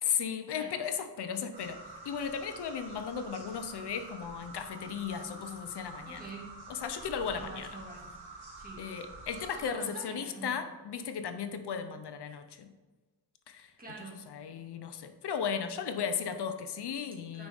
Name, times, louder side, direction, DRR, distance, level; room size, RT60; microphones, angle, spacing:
voice 1, 0.0-1.8 2.0-6.3 6.7-7.7 8.8-12.7 13.5-13.7 14.3-17.5, left 7 dB, 75° left, 8 dB, 0.8 m, -35 dB
sound 1, 1.5-9.7, right 2 dB, 75° right, 2.1 m, -48 dB
voice 2, 6.1-6.6 7.2-8.1 8.6-8.9 9.5-10.6 13.8-14.3 17.3-17.5, right 2 dB, 20° right, -3 dB, 2.0 m, -46 dB
9.3 x 5.4 x 3.5 m, 1.2 s
wide cardioid pair, 145°, 40 cm